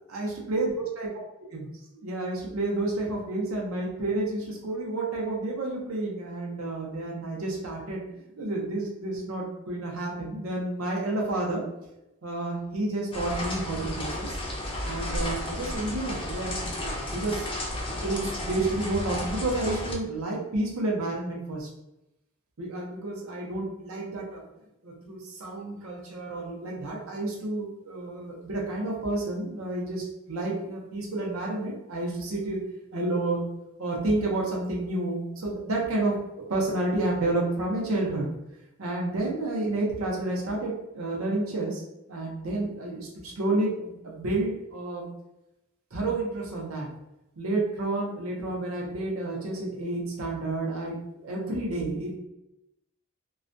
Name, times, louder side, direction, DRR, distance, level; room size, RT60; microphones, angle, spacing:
voice 1, 0.1-1.1 1.5-1.7 2.0-11.6 12.2-14.4 14.8-21.7 22.6-24.4 24.8-32.6 32.9-33.4 33.8-36.2 36.5-38.3 38.8-41.8 42.1-45.1 45.9-46.9 47.4-52.2, right 2 dB, 90° right, -2 dB, 0.7 m, -30 dB
sound 1, 13.1-19.9, left 1 dB, 25° left, 0.4 m, -33 dB
2.3 x 2.2 x 2.5 m, 0.90 s
head